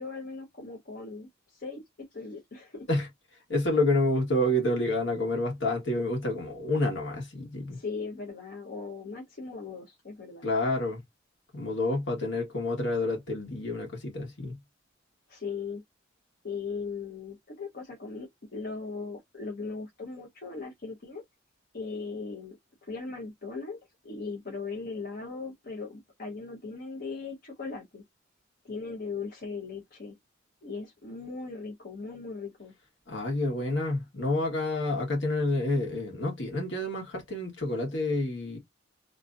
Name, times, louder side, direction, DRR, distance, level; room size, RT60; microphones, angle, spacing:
voice 1, 0.0-1.8 2.1-2.9 7.7-10.5 15.3-15.8 16.4-21.2 21.7-22.6 22.8-23.8 24.0-28.0 28.6-30.1 30.6-32.7, left 4 dB, 50° left, 0.9 m, -38 dB
voice 2, 3.5-7.8 10.4-11.0 11.5-14.6 33.1-38.6, left 1 dB, 65° left, 1.4 m, -28 dB
3.0 x 2.6 x 2.4 m
head